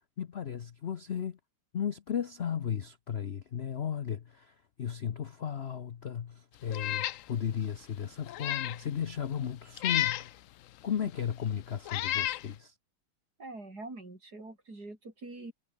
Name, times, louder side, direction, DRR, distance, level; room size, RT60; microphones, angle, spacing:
voice 1, 0.2-1.4 1.7-10.3 10.8-12.7, left 8 dB, 50° left, 0.8 m, -35 dB
Meow, 6.7-7.2 7.6-7.7 8.3-8.8 9.8-10.3 11.2-11.3 11.9-12.4, left 14 dB, 85° left, 0.7 m, -31 dB
voice 2, 13.4-15.5, right 2 dB, 55° right, 6.5 m, -44 dB
omnidirectional pair, 2.0 m